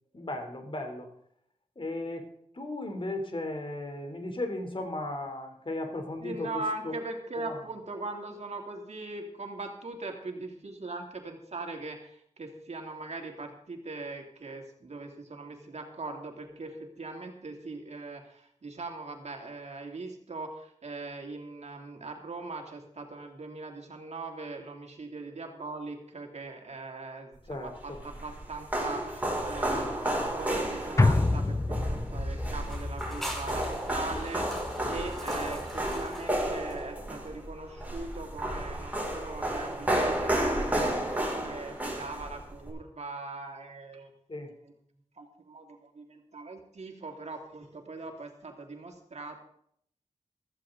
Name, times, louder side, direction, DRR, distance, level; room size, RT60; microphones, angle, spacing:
voice 1, 0.1-1.1 1.8-2.3 2.5-6.5 6.8-7.0 7.4-7.6 27.5-28.0 34.8-34.9 44.3-44.5, left 2 dB, 45° left, 5 dB, 3.4 m, -36 dB
voice 2, 6.2-44.1 45.2-49.4, right 3 dB, 65° right, 2 dB, 2.9 m, -40 dB
sound 1, 27.7-42.7, right 1 dB, 15° right, 5.7 m, -32 dB
sound 2, 31.0-35.4 35.8-35.9, left 2 dB, 25° left, 0.6 m, -29 dB
sound 3, 32.6-37.2, equal, 5° left, 5.1 m, -43 dB
15.5 x 14.5 x 3.9 m, 0.67 s
cardioid pair, 60°, 12 cm